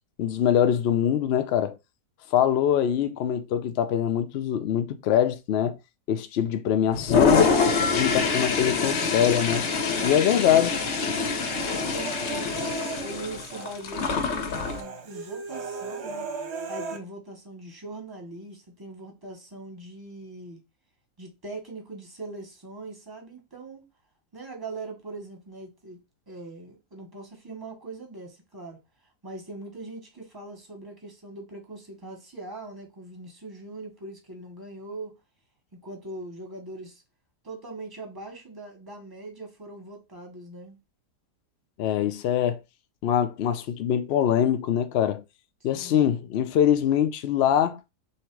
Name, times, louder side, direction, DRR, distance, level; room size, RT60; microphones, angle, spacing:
voice 1, 0.2-1.7 2.3-5.7 6.1-7.6 8.0-9.7 10.0-10.8 41.8-42.6 43.0-45.2 45.6-47.8, left 9 dB, 70° left, 0.6 m, -23 dB
Toilet flush, 6.9-14.8, left 4 dB, 55° left, 0.9 m, -25 dB
voice 2, 8.8-9.2 9.9-10.5 11.3-12.5 13.0-16.3 16.7-20.6 21.2-23.8 24.3-26.0 26.3-28.8 29.2-35.1 35.7-37.0 37.4-40.8 45.7-46.1, right 2 dB, 15° right, 1.1 m, -41 dB
Human voice, 9.0-10.2 10.5-13.7 14.0-14.2 14.5-17.0, right 4 dB, 50° right, 1.0 m, -37 dB
3.2 x 2.8 x 4.5 m
omnidirectional pair, 1.7 m